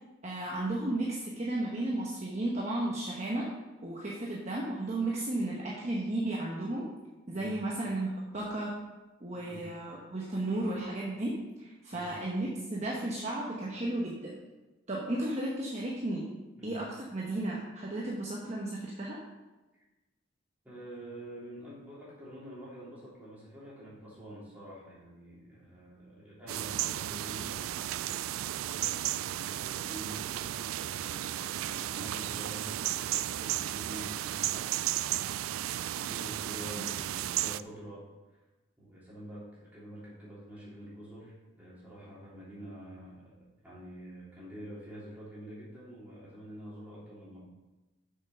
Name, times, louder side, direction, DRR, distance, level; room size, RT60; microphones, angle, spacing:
voice 1, 0.2-3.5 3.8-6.9 7.3-8.8 9.2-14.3 14.9-16.3 16.6-19.2, right 1 dB, 35° right, -4 dB, 1.1 m, -34 dB
voice 2, 20.6-27.7 28.6-34.7 35.9-38.0 38.8-47.4, right 1 dB, 10° right, -9 dB, 3.2 m, -47 dB
sound 1, 26.5-37.6, right 13 dB, 85° right, 0.3 m, -34 dB
6.8 x 6.7 x 5.6 m, 1.1 s
head